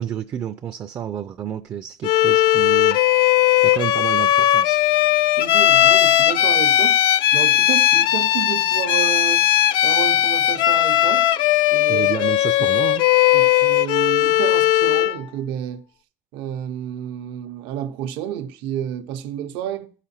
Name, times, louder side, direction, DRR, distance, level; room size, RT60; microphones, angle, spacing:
voice 1, 0.0-3.0 3.6-4.8 11.9-13.1, right 9 dB, 35° right, 0.4 m, -30 dB
Bowed string instrument, 2.0-15.2, left 13 dB, 70° left, 0.4 m, -17 dB
voice 2, 5.4-7.0 7.3-11.3 11.7-12.1 13.3-15.8 16.3-19.9, right 10 dB, 85° right, 0.7 m, -30 dB
14.0 x 5.0 x 4.2 m
cardioid pair, 145°, 8 cm